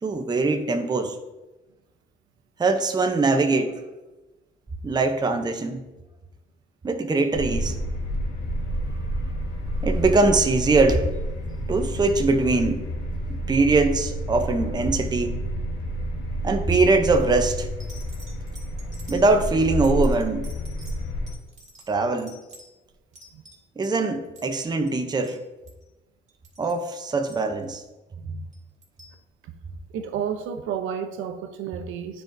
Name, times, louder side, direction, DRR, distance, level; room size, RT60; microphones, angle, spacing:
voice 1, 0.0-1.2 2.6-3.8 4.8-5.8 6.8-7.8 8.8-9.4 9.8-11.1 11.7-12.9 13.3-15.4 16.4-17.7 19.1-20.5 21.9-22.4 23.8-25.4 26.6-27.8, right 3 dB, 20° right, 6 dB, 0.6 m, -22 dB
sound 1, 7.3-21.3, equal, 80° left, 1.3 m, -29 dB
voice 2, 14.6-15.0 23.3-23.4 28.2-28.5 29.4-29.5 29.9-32.2, right 8 dB, 85° right, 8 dB, 0.7 m, -32 dB
sound 2, 17.2-17.3 17.8-24.0 24.2-24.6 24.9-25.0 25.2-25.4 25.7-25.9 26.3-27.9 28.5-29.2 30.0-30.1, right 1 dB, 35° right, 2.2 m, -49 dB
9.8 x 4.6 x 2.6 m, 1.1 s
cardioid pair, 90°, 20 cm